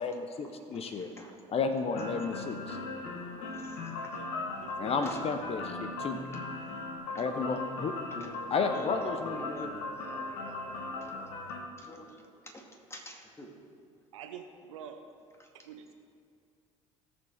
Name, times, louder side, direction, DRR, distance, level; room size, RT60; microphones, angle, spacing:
voice 1, 0.0-1.1 1.5-2.8 4.8-6.2 7.2-7.9 8.5-9.7, left 4 dB, 40° left, 7 dB, 0.8 m, -32 dB
voice 2, 0.7-1.4 3.3-4.2 5.0-5.3 7.1-7.6 8.1-8.4 8.7-12.2 12.5-12.6 12.9-13.5 15.4-15.5, left 1 dB, 15° left, 1 dB, 2.1 m, -47 dB
sound 1, 1.9-11.6, left 2 dB, 65° left, 1.4 m, -38 dB
voice 3, 4.1-5.0 7.0-7.8 11.9-12.3 14.1-15.1 15.5-15.9, right 8 dB, 75° right, 6 dB, 0.8 m, -49 dB
17.5 x 7.1 x 3.5 m, 2.2 s
figure-of-eight pair, 60°, 16 cm